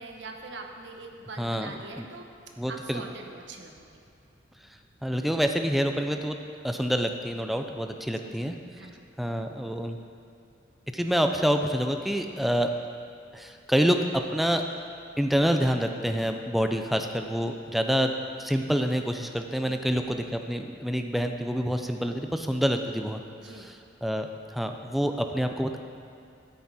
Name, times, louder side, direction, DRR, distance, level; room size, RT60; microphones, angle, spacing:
voice 1, 0.0-2.3 2.7-4.0 8.2-8.4 8.7-9.1 19.6-19.8 23.4-23.7, right 3 dB, 75° right, 3 dB, 1.1 m, -43 dB
voice 2, 1.4-1.7 2.0-2.1 2.6-3.0 5.0-6.4 6.6-8.5 9.2-10.0 10.9-12.7 13.3-14.6 15.2-18.1 18.4-23.8 24.0-25.8, equal, ahead, 5 dB, 0.4 m, -27 dB
13.0 x 9.6 x 4.2 m, 2.5 s
head